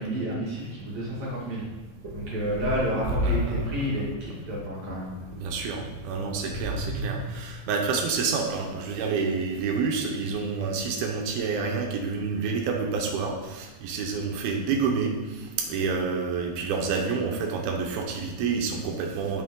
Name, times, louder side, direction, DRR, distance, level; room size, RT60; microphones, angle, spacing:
voice 1, 0.0-1.6 2.1-5.1, equal, 55° right, -6 dB, 2.8 m, -30 dB
sound 1, 1.7-7.1, equal, 25° right, 1.8 m, -33 dB
voice 2, 3.1-3.7 5.3-19.4, right 5 dB, 80° right, 2 dB, 2.6 m, -28 dB
11.0 x 6.2 x 3.7 m, 1.2 s
omnidirectional pair, 4.5 m